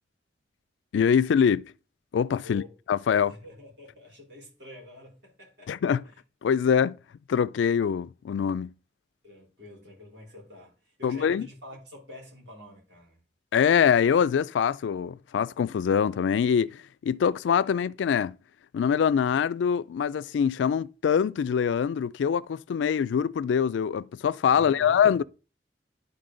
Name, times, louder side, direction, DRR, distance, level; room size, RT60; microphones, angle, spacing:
voice 1, 0.9-1.6 2.1-2.6 2.9-3.4 5.7-6.0 6.4-7.0 7.3-8.7 11.0-11.5 13.5-18.3 18.7-25.2, left 7 dB, 90° left, 0.3 m, -24 dB
voice 2, 2.4-2.7 3.3-5.8 6.0-6.2 9.2-13.2 24.5-25.2, left 2 dB, 70° right, 3.8 m, -47 dB
11.0 x 4.1 x 3.8 m
head